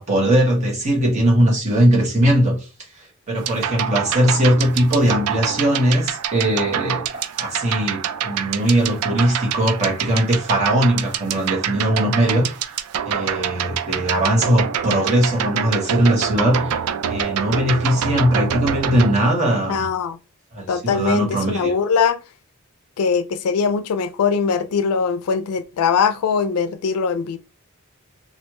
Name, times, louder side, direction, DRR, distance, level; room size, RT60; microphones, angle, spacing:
voice 1, 0.0-2.7 2.9-12.5 13.0-16.8 17.1-19.9 20.5-21.7, right 1 dB, 35° right, 1.2 m, -19 dB
sound 1, 3.4-19.2, right 8 dB, 85° right, 0.4 m, -26 dB
voice 2, 19.7-20.2 20.7-22.2 23.0-27.4, left 6 dB, 90° left, 0.4 m, -21 dB
3.2 x 2.5 x 2.9 m
head